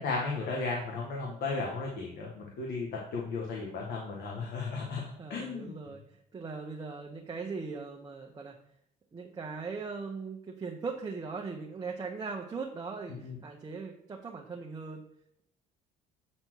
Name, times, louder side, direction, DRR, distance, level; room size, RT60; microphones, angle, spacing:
voice 1, 0.0-5.7 13.1-13.3, left 3 dB, 70° left, -2 dB, 1.6 m, -35 dB
voice 2, 5.2-6.0 6.3-8.6 9.1-15.0, right 4 dB, 25° right, 0 dB, 0.9 m, -39 dB
8.1 x 4.3 x 4.6 m, 0.72 s
cardioid pair, 110°, 17 cm